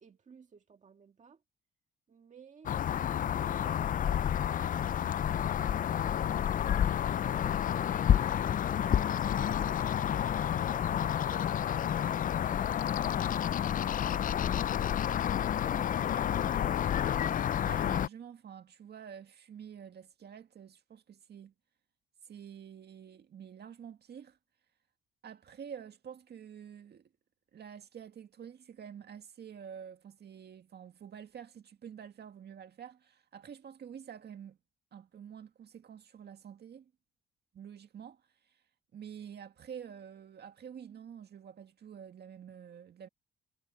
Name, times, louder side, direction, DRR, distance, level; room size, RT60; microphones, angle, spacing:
voice 1, 0.0-1.4 2.1-9.9 10.2-14.6 15.3-16.8, right 6 dB, 40° right, 1.7 m, -58 dB
sound 1, 2.7-18.1, left 10 dB, 45° left, 0.4 m, -30 dB
voice 2, 17.6-21.5 22.2-24.4 25.2-27.1 27.5-34.6 34.9-36.9 37.5-38.6 38.9-43.1, right 8 dB, 55° right, 2.0 m, -48 dB
cardioid pair, 90°, 20 cm